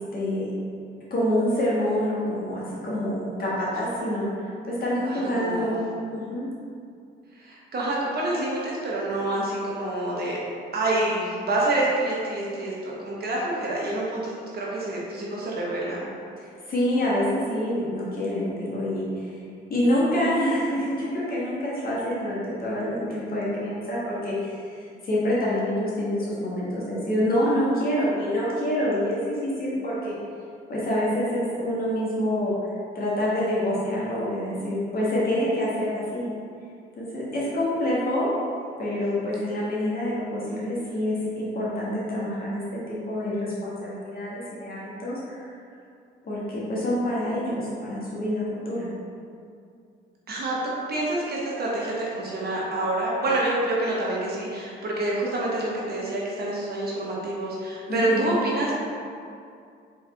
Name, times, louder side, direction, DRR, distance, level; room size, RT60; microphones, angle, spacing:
voice 1, 0.1-0.5 1.1-5.8 6.1-6.5 16.4-19.4 19.7-30.2 30.7-32.5 32.9-36.3 36.9-38.3 38.8-45.5 46.2-48.9 57.9-58.4, left 1 dB, 50° left, -7 dB, 1.4 m, -27 dB
voice 2, 5.1-5.7 7.4-10.4 10.7-16.1 50.3-50.6 50.9-58.8, right 2 dB, 50° right, -4 dB, 1.0 m, -27 dB
3.7 x 3.2 x 3.3 m, 2.4 s
cardioid pair, 90°, 20 cm